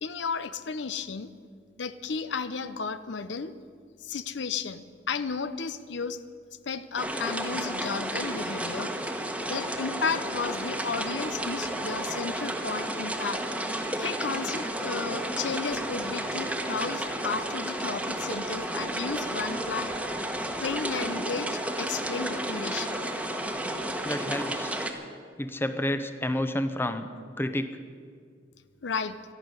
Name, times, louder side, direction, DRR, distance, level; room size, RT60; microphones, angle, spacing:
voice 1, 0.0-1.3 1.8-3.5 4.0-6.2 6.6-8.9 9.5-13.4 14.0-19.9 20.6-23.1 28.8-29.2, left 5 dB, 75° left, 12 dB, 0.7 m, -33 dB
sound 1, 7.0-24.9, right 1 dB, 5° right, 1.2 m, -32 dB
voice 2, 24.0-24.8 25.4-27.1 27.4-27.8, left 1 dB, 10° left, 9 dB, 0.7 m, -30 dB
12.5 x 12.0 x 9.6 m, 2.1 s
head